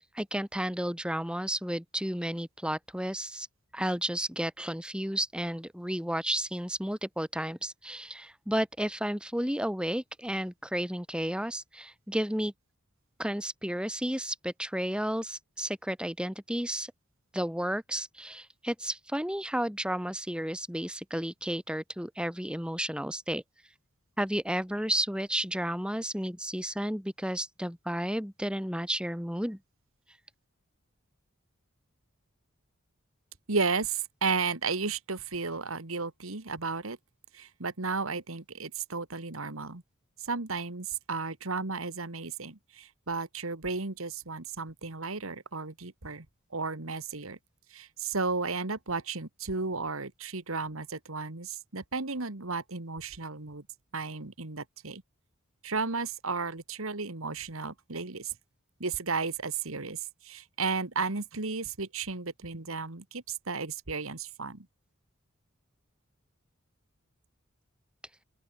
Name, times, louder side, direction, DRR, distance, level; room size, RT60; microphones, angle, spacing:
voice 1, 0.1-3.5 3.7-12.5 13.2-16.9 17.3-23.4 24.2-29.6, equal, 5° right, 5.4 m, -32 dB
voice 2, 33.5-37.0 37.3-39.8 40.2-46.3 46.5-47.4 47.7-53.6 53.9-55.0 55.6-58.3 58.8-64.7, right 4 dB, 80° right, 2.0 m, -34 dB
open air
head